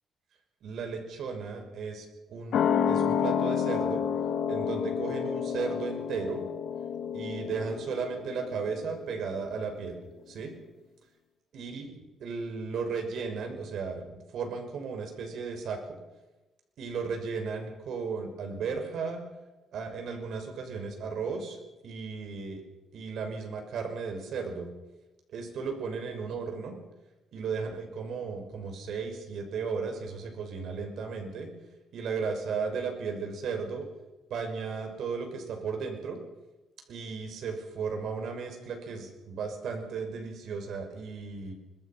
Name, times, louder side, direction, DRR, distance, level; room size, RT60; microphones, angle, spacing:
voice 1, 0.6-4.0 4.5-6.4 7.1-10.0 10.3-10.5 11.5-15.8 16.8-19.2 19.7-21.6 21.8-22.6 22.9-24.7 25.3-26.7 27.3-31.5 31.9-33.8 34.3-36.2 36.9-41.5, right 5 dB, 75° right, 5 dB, 6.2 m, -35 dB
sound 1, 2.5-9.6 9.9-10.0, left 8 dB, 75° left, 2.1 m, -30 dB
25.5 x 21.5 x 6.0 m, 1.1 s
cardioid pair, 70°, 0 cm